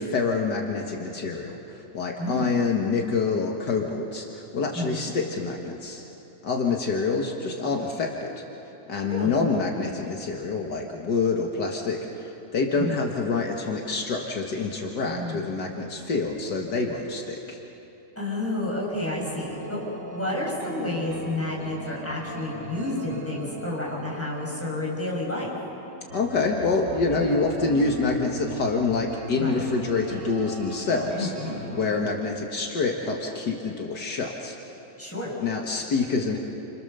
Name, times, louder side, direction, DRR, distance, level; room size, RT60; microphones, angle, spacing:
voice 1, 0.0-6.0 6.4-8.3 8.9-17.6 26.1-31.3 31.7-34.6 35.4-36.4, left 4 dB, 75° left, 1 dB, 2.2 m, -26 dB
voice 2, 2.2-2.5 4.7-5.1 9.0-9.3 12.7-13.0 15.0-15.5 18.2-19.8 20.1-25.5 29.3-29.6 31.1-31.6 35.0-35.3, left 2 dB, 5° left, -5 dB, 6.4 m, -30 dB
sound 1, 19.2-32.0, right 2 dB, 65° right, 5.3 m, -39 dB
29.5 x 26.5 x 6.8 m, 3.0 s
omnidirectional pair, 1.8 m